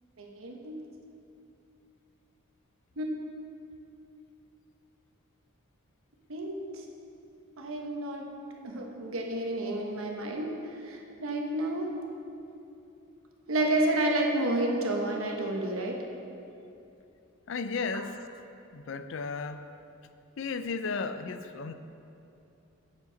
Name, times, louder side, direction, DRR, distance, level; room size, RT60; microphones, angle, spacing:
voice 1, 0.2-0.8 3.0-3.1 6.3-6.8 7.6-8.3 8.6-10.5 10.8-11.9 13.5-16.0 17.9-18.0, right 1 dB, 80° right, 1 dB, 1.1 m, -30 dB
voice 2, 17.5-18.2 18.7-19.7 20.4-21.7, left 4 dB, 65° left, 10 dB, 0.4 m, -34 dB
8.3 x 7.8 x 5.1 m, 2.7 s
head